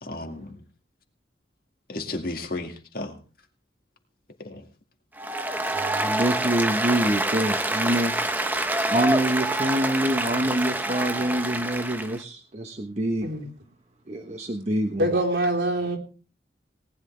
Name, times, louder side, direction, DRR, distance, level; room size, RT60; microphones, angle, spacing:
voice 1, 0.0-0.6 1.9-3.2 4.4-4.6, left 2 dB, 55° left, 2.2 m, -33 dB
Applause, 5.2-12.2, right 1 dB, 10° right, 0.9 m, -26 dB
voice 2, 5.6-8.1 8.4-13.3 14.1-15.1, right 1 dB, 40° right, 1.1 m, -26 dB
voice 3, 15.0-16.0, right 1 dB, 80° right, 3.6 m, -24 dB
18.5 x 11.0 x 3.4 m
head